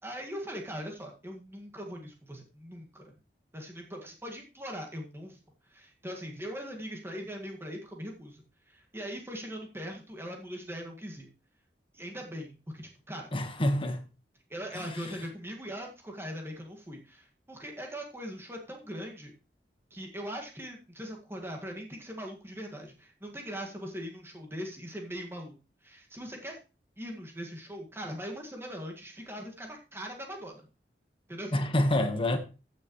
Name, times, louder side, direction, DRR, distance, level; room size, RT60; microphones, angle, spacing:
voice 1, 0.0-3.2 3.5-5.4 5.7-11.3 11.9-13.3 14.5-19.3 19.9-25.6 25.8-26.6 27.0-30.6 31.3-31.6, equal, 15° right, 1.8 m, -41 dB
voice 2, 13.3-14.1 14.7-15.2 31.5-32.4, left 1 dB, 30° left, 1.3 m, -28 dB
14.5 x 6.5 x 3.1 m
head